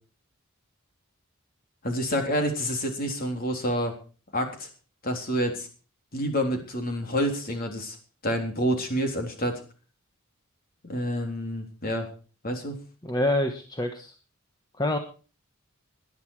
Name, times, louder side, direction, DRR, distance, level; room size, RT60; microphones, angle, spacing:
voice 1, 1.8-4.0 4.3-4.7 5.0-5.7 6.1-8.0 8.2-9.6 10.8-12.1 12.4-12.8, equal, 45° left, 4 dB, 3.7 m, -28 dB
voice 2, 13.0-14.1 14.8-15.0, left 1 dB, 20° left, 5 dB, 1.3 m, -26 dB
18.5 x 11.0 x 4.8 m, 0.37 s
head